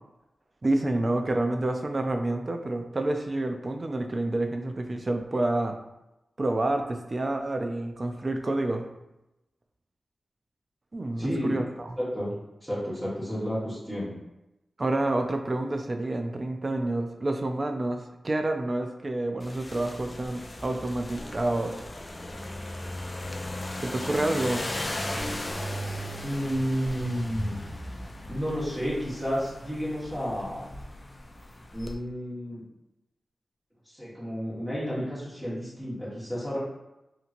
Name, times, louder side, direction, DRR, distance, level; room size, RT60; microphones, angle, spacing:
voice 1, 0.6-5.8 6.4-8.9 10.9-12.0 14.8-21.8 23.8-24.6, right 2 dB, 40° right, 5 dB, 0.4 m, -28 dB
voice 2, 11.2-11.6 12.0-12.3 12.6-14.1 26.2-27.6 28.3-30.6 31.7-32.6 33.8-36.6, equal, 15° right, -9 dB, 1.3 m, -31 dB
sound 1, 19.4-31.9, left 1 dB, 40° left, 0.4 m, -37 dB
2.9 x 2.7 x 2.5 m, 0.95 s
cardioid pair, 55°, 0 cm